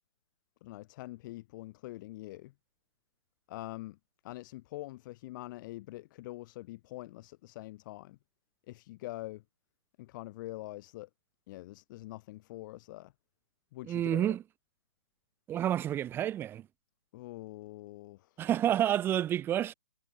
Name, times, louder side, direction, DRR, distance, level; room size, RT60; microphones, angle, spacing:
voice 1, 0.6-2.5 3.5-4.0 4.2-8.2 8.7-9.4 10.0-11.1 11.5-13.1 13.7-14.4 17.1-18.4, left 18 dB, 35° left, 2.0 m, -44 dB
voice 2, 13.8-14.4 15.5-16.7 18.4-19.7, right 11 dB, 10° right, 0.6 m, -29 dB
figure-of-eight pair, 130°, 18 cm